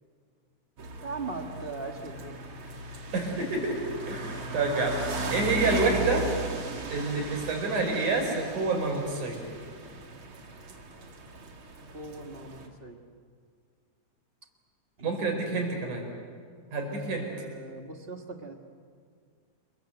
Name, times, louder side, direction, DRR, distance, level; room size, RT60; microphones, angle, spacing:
voice 1, 0.8-2.4 11.9-13.0 15.0-15.7 16.8-18.5, right 3 dB, 25° right, 4 dB, 1.3 m, -40 dB
sound 1, 0.8-12.7, right 2 dB, 45° right, 2.6 m, -37 dB
voice 2, 3.1-3.8 4.1-5.0 5.3-6.2 6.9-9.4 15.0-16.1 16.7-17.3, right 3 dB, 70° right, 1 dB, 6.5 m, -28 dB
29.0 x 22.0 x 8.0 m, 2.1 s
omnidirectional pair, 3.6 m